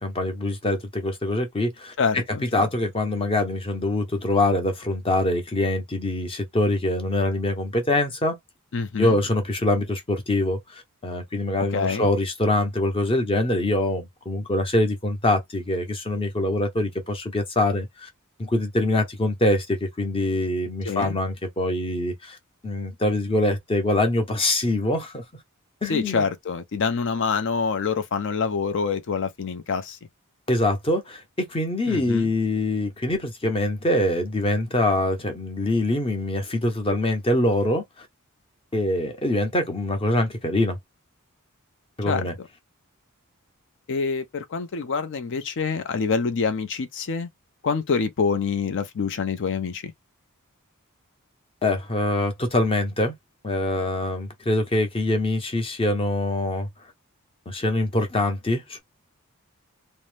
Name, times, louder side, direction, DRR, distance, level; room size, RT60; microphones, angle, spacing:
voice 1, 0.0-1.9 2.4-8.4 9.0-18.1 18.4-22.4 22.6-25.2 25.8-26.2 30.5-31.2 31.5-37.8 38.7-40.8 42.0-42.3 51.6-53.1 53.4-56.7 57.5-58.8, left 1 dB, 25° left, 0.7 m, -24 dB
voice 2, 2.0-2.7 8.7-9.2 11.7-12.1 20.8-21.2 25.9-30.0 31.9-32.3 42.1-42.5 43.9-47.3 47.6-49.9, left 5 dB, 55° left, 0.5 m, -26 dB
2.6 x 2.0 x 3.2 m
head